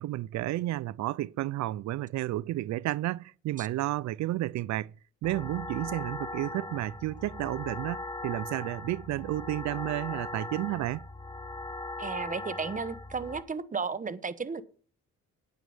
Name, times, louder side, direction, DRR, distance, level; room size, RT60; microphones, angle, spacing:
voice 1, 0.0-4.9 5.2-11.0, right 15 dB, 65° right, 0.5 m, -32 dB
sound 1, 5.2-13.4, left 2 dB, 15° left, 1.3 m, -39 dB
voice 2, 12.0-14.6, right 5 dB, 25° right, 1.0 m, -34 dB
9.6 x 9.3 x 5.5 m
cardioid pair, 90°, 30 cm